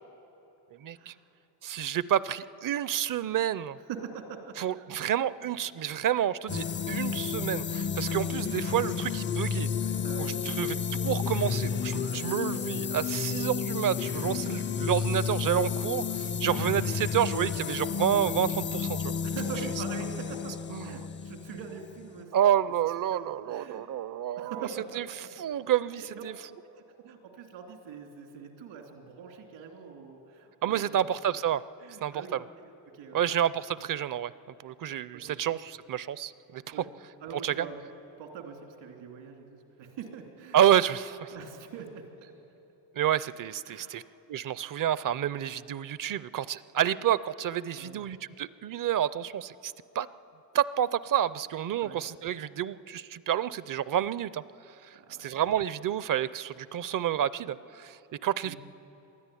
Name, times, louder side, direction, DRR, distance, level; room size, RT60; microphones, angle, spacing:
voice 1, 0.8-1.1 1.6-3.8 4.6-9.7 10.2-19.1 20.7-21.0 22.3-24.7 25.0-26.3 30.6-31.6 32.0-32.4 33.1-34.3 34.6-36.8 37.4-37.7 40.5-41.3 43.0-44.0 44.3-50.1 50.5-54.4 55.2-58.5, right 10 dB, 45° right, 18 dB, 0.6 m, -29 dB
voice 2, 3.9-4.9 5.4-5.5 6.9-7.0 8.5-8.8 10.0-10.5 12.1-12.2 12.8-12.9 19.2-20.5 20.8-22.3 23.1-23.8 24.4-25.0 25.9-26.3 26.6-31.0 31.8-32.4 32.8-33.2 35.1-35.4 36.7-36.9 37.2-37.8 38.2-40.6 41.3-42.3 43.6-44.1 47.8-48.0 51.8-52.0 54.9-55.3 58.4-58.6, right 6 dB, 85° right, 3 dB, 3.0 m, -43 dB
sound 1, 6.5-22.2, left 6 dB, 25° left, 0.5 m, -31 dB
22.0 x 13.0 x 9.9 m, 2.9 s
cardioid pair, 85°, 44 cm